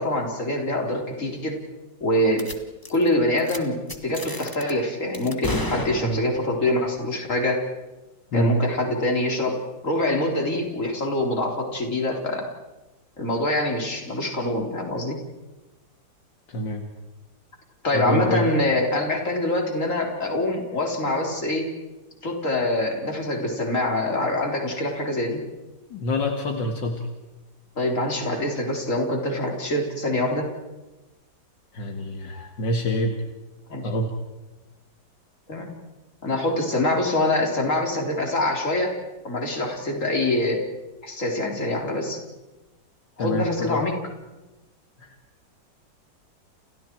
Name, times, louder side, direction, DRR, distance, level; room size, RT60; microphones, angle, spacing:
voice 1, 0.0-1.6 2.0-2.4 2.9-7.6 8.3-9.6 9.8-12.5 13.2-15.2 17.8-21.7 22.2-25.4 27.8-30.5 33.7-33.9 35.5-35.7 36.2-38.9 39.2-40.6 41.0-42.2 43.2-44.0, left 1 dB, 40° left, 1 dB, 4.3 m, -25 dB
sound 1, 2.4-2.6 2.8-3.1 3.4-3.6 3.9-4.7 5.1-6.5, left 1 dB, 10° left, 1.6 m, -33 dB
voice 2, 17.9-18.4 25.9-27.0 31.7-33.1 33.8-34.1 43.2-43.8, equal, 70° left, 3 dB, 2.6 m, -25 dB
29.5 x 29.5 x 4.7 m, 1.1 s
omnidirectional pair, 2.0 m